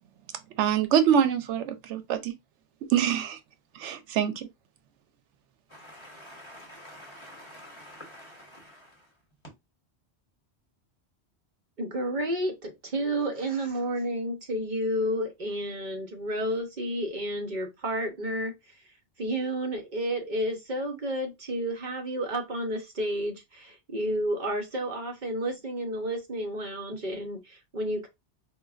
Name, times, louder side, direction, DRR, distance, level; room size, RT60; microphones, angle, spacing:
voice 1, 0.6-2.3 2.9-3.4 3.8-4.5, right 9 dB, 90° right, 0.9 m, -25 dB
voice 2, 5.7-9.0, equal, 25° left, 1.0 m, -47 dB
voice 3, 11.8-18.5 19.2-28.1, right 1 dB, 45° right, 0.9 m, -31 dB
4.5 x 2.3 x 2.3 m
omnidirectional pair, 1.2 m